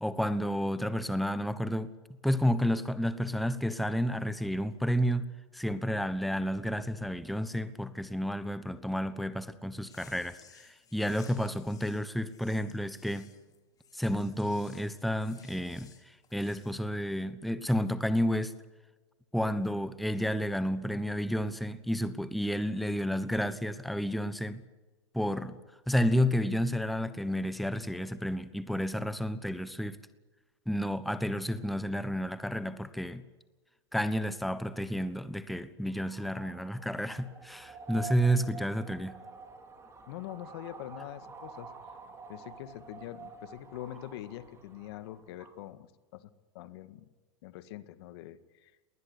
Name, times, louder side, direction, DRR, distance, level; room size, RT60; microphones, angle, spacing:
voice 1, 0.0-1.9 2.2-5.3 5.5-13.3 13.9-18.5 19.3-24.6 25.1-25.6 25.9-30.0 30.7-33.2 33.9-39.2, equal, ahead, 13 dB, 1.1 m, -31 dB
sound 1, 9.8-16.8, left 7 dB, 25° left, 2.9 m, -58 dB
sound 2, 35.9-45.6, right 5 dB, 20° right, 5.0 m, -48 dB
voice 2, 40.1-41.7 42.3-45.9 46.1-47.1 47.4-48.7, left 13 dB, 60° left, 13 dB, 1.7 m, -44 dB
20.0 x 20.0 x 9.8 m, 1.2 s
hypercardioid pair, 120°, 15 cm